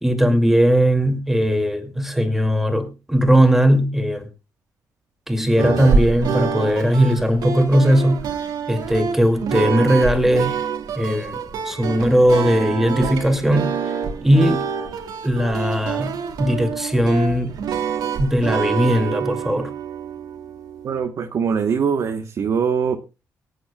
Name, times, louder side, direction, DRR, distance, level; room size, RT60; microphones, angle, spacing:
voice 1, 0.0-4.3 5.3-8.3 8.7-10.6 11.0-13.7 14.2-14.7 15.2-17.5 18.2-19.7, equal, 5° right, 2.3 m, -18 dB
sound 1, 5.6-21.0, right 6 dB, 90° right, 2.5 m, -26 dB
voice 2, 20.8-23.0, right 6 dB, 50° right, 1.1 m, -22 dB
24.0 x 9.4 x 2.3 m
cardioid pair, 150°, 7 cm